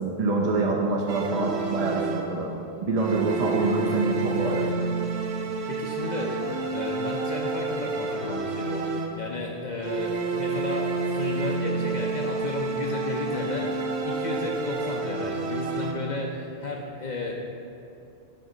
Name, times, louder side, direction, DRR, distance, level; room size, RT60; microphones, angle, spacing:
voice 1, 0.0-4.9, right 3 dB, 50° right, -1 dB, 0.5 m, -26 dB
sound 1, 1.1-2.6 3.0-9.4 9.8-16.3, right 3 dB, 75° right, 0.9 m, -29 dB
voice 2, 5.7-13.7 14.0-17.4, left 3 dB, 50° left, -1 dB, 0.6 m, -33 dB
7.7 x 5.4 x 3.8 m, 2.6 s
omnidirectional pair, 1.1 m